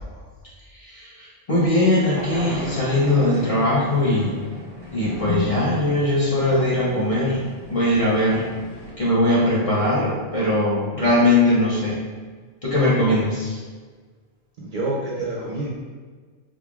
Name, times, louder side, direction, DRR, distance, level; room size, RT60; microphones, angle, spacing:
voice 1, 0.7-4.3 4.9-7.4 7.7-8.4 9.0-12.0 12.6-13.6, left 1 dB, 35° left, -7 dB, 0.8 m, -20 dB
sound 1, 2.1-8.9, left 2 dB, 25° right, 0.9 m, -34 dB
voice 2, 14.6-15.7, right 2 dB, 55° right, -5 dB, 0.7 m, -27 dB
3.7 x 3.3 x 2.3 m, 1.5 s
omnidirectional pair, 1.2 m